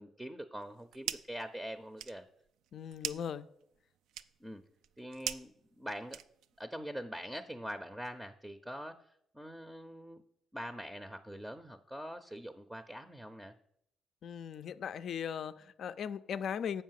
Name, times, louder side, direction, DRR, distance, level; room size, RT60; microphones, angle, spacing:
voice 1, 0.0-2.3 4.4-4.6 5.0-5.5 5.8-6.2 6.6-9.0 9.3-10.2 10.5-13.5, equal, 5° right, 8 dB, 0.6 m, -43 dB
sound 1, 0.6-1.4 1.7-6.6, right 10 dB, 85° right, 0.4 m, -43 dB
voice 2, 2.7-3.5 14.2-16.8, left 8 dB, 65° left, 13 dB, 0.4 m, -38 dB
7.2 x 5.5 x 7.5 m, 0.75 s
cardioid pair, 90°, 0 cm